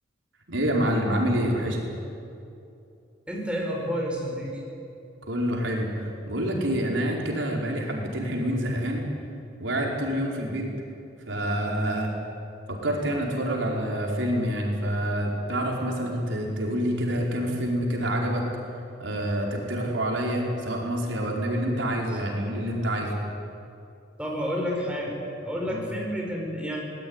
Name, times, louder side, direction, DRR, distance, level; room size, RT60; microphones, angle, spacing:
voice 1, 0.5-1.8 5.3-5.9 6.3-9.0 9.6-10.7 11.3-12.1 12.7-18.4 19.0-23.1 25.7-25.9, equal, 85° right, -1 dB, 5.0 m, -27 dB
voice 2, 3.3-4.6 24.2-25.1 25.4-26.8, equal, 5° right, -1 dB, 5.2 m, -30 dB
25.5 x 19.5 x 9.9 m, 2.7 s
head